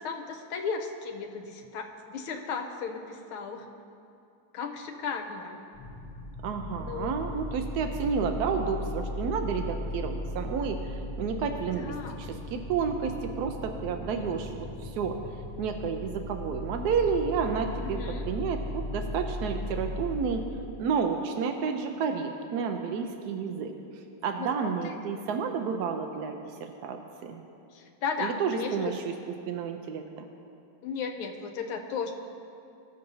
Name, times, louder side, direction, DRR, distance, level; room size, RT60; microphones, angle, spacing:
voice 1, 0.0-3.7 4.5-5.6 6.8-7.1 11.8-12.2 17.8-18.3 24.4-25.4 27.7-28.9 30.8-32.1, left 5 dB, 90° left, 3 dB, 1.6 m, -35 dB
sound 1, 5.7-20.9, left 1 dB, 25° left, 1.4 m, -37 dB
voice 2, 6.4-15.2 15.6-20.4 20.8-27.4 28.2-29.1 29.5-30.3, right 6 dB, 80° right, 5 dB, 0.8 m, -31 dB
16.5 x 6.6 x 2.7 m, 2.7 s
omnidirectional pair, 2.3 m